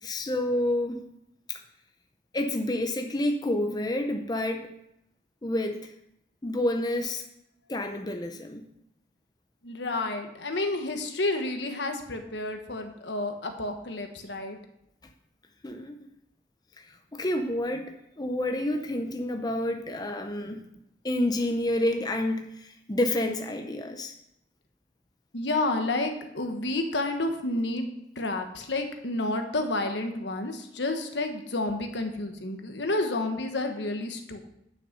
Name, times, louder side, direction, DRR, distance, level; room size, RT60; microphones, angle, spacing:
voice 1, 0.0-1.1 1.5-1.6 2.3-4.7 5.4-5.9 6.4-7.2 7.7-8.7 15.6-16.0 17.1-20.6 21.0-24.1, left 1 dB, 20° left, 5 dB, 0.6 m, -29 dB
voice 2, 9.6-14.6 25.3-27.9 28.2-34.4, left 2 dB, 75° left, 5 dB, 1.3 m, -30 dB
10.0 x 6.2 x 5.3 m, 0.80 s
head